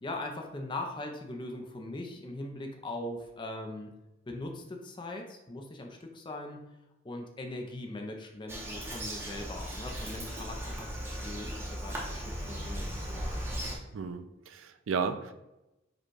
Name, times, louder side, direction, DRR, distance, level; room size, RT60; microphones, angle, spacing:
voice 1, 0.0-3.9 4.3-6.6 7.0-13.2, left 2 dB, 25° left, 2 dB, 0.5 m, -40 dB
Bird vocalization bird call bird song, 8.5-13.8, equal, 10° right, 0.8 m, -37 dB
voice 2, 13.9-15.3, right 5 dB, 75° right, 9 dB, 0.4 m, -34 dB
5.0 x 2.3 x 4.6 m, 0.95 s
head